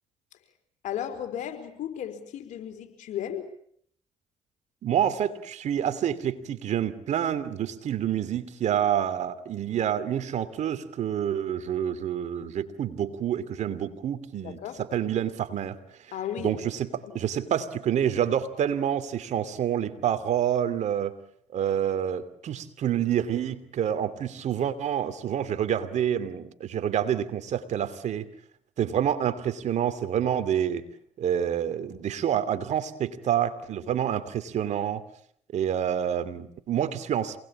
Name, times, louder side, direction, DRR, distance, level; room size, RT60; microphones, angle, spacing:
voice 1, 0.8-3.5 14.4-14.8 16.1-16.6 17.0-17.2 33.8-34.0, left 10 dB, 70° left, 7 dB, 4.7 m, -35 dB
voice 2, 4.8-15.8 16.4-21.2 21.5-28.3 28.8-30.8 31.2-35.0 35.5-37.4, right 9 dB, 65° right, 12 dB, 2.8 m, -28 dB
27.5 x 20.0 x 8.8 m, 0.65 s
supercardioid pair, 65°, 13 cm